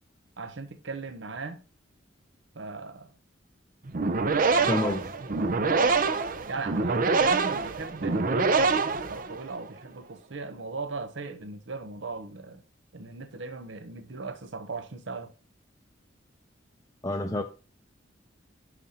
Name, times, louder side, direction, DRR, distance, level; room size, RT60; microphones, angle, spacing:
voice 1, 0.4-1.6 2.5-3.2 4.5-4.8 5.6-6.0 6.5-12.6 12.9-15.3, right 4 dB, 75° right, 0.8 m, -37 dB
sound 1, 3.9-9.6, right 4 dB, 45° right, 0.5 m, -25 dB
voice 2, 4.7-5.0 17.0-17.4, left 1 dB, 20° left, 0.5 m, -27 dB
11.0 x 5.0 x 2.8 m
head